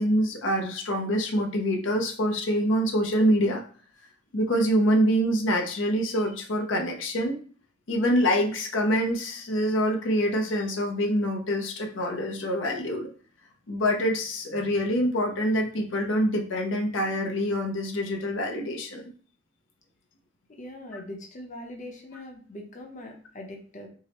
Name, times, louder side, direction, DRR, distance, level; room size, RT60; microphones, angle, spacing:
voice 1, 0.0-3.6 4.3-7.4 7.9-13.1 13.7-19.0, equal, 90° left, 2 dB, 0.6 m, -25 dB
voice 2, 20.6-23.9, left 1 dB, 40° left, 2 dB, 0.6 m, -41 dB
4.6 x 2.1 x 2.9 m, 0.42 s
head